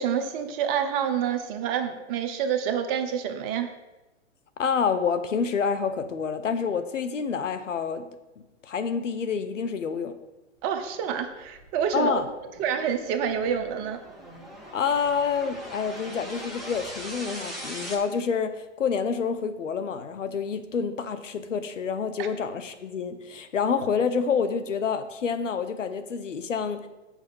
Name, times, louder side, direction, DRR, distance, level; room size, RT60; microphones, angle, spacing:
voice 1, 0.0-3.7 10.6-12.1 12.6-14.0 22.2-22.3, right 8 dB, 30° right, 6 dB, 0.7 m, -27 dB
voice 2, 4.6-8.1 8.6-10.1 11.9-12.3 14.7-26.9, left 6 dB, 85° left, 10 dB, 0.9 m, -28 dB
sound 1, 11.0-17.9, equal, ahead, 0.3 m, -41 dB
6.3 x 5.0 x 6.8 m, 1.1 s
hypercardioid pair, 130°, 36 cm